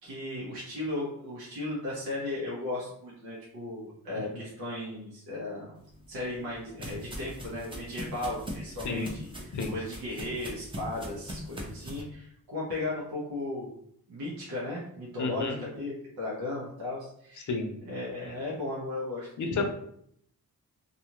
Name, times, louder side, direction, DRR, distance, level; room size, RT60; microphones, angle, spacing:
voice 1, 0.0-5.7 6.1-13.7 14.1-17.5 17.8-19.7, left 2 dB, 85° right, -7 dB, 0.9 m, -36 dB
sound 1, 5.9-12.0, equal, 15° right, 0.6 m, -41 dB
voice 2, 15.2-15.6 17.5-17.7 19.4-19.7, left 4 dB, 55° left, 4 dB, 0.6 m, -30 dB
2.6 x 2.4 x 2.9 m, 0.68 s
wide cardioid pair, 110°, 36 cm